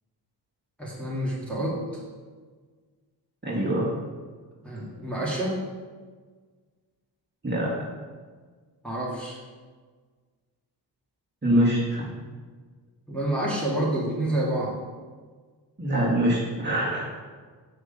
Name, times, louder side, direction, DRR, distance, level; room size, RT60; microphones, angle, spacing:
voice 1, 0.8-2.0 4.6-5.6 8.8-9.4 13.1-14.8, right 1 dB, 5° left, -7 dB, 1.9 m, -28 dB
voice 2, 3.4-3.9 7.4-7.7 11.4-12.1 15.8-17.0, right 1 dB, 25° right, -6 dB, 1.8 m, -24 dB
6.1 x 3.5 x 5.5 m, 1.5 s
cardioid pair, 75°, 44 cm